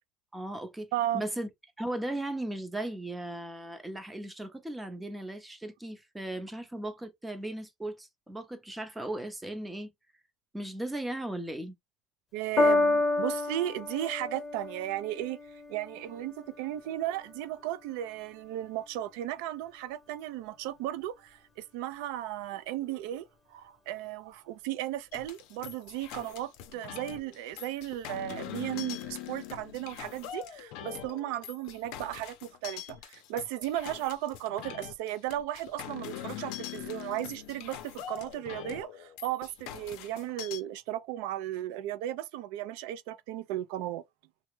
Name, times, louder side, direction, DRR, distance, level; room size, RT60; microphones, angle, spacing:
voice 1, 0.3-0.9 1.1-1.5 1.8-9.9 10.5-11.8, right 1 dB, 10° right, 0.6 m, -37 dB
voice 2, 0.9-1.2 12.3-15.4 15.7-44.0, right 13 dB, 90° right, 0.4 m, -35 dB
Piano, 12.6-19.1 20.0-20.1, left 2 dB, 25° left, 0.7 m, -31 dB
sound 1, 25.1-40.6, left 11 dB, 75° left, 0.5 m, -43 dB
3.3 x 2.0 x 3.0 m
cardioid pair, 150°, 0 cm